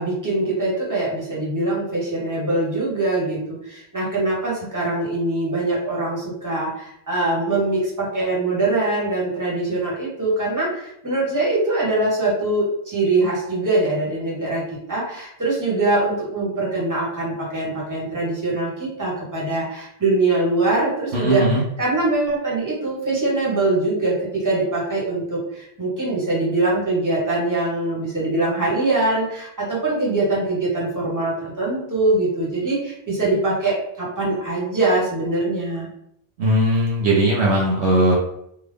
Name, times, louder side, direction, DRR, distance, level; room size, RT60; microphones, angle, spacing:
voice 1, 0.0-14.6 14.9-21.4 21.8-35.9, right 2 dB, 15° right, -5 dB, 1.2 m, -23 dB
voice 2, 21.1-21.6 36.4-38.2, right 1 dB, 65° right, -3 dB, 0.9 m, -18 dB
3.5 x 2.4 x 3.3 m, 0.75 s
omnidirectional pair, 1.2 m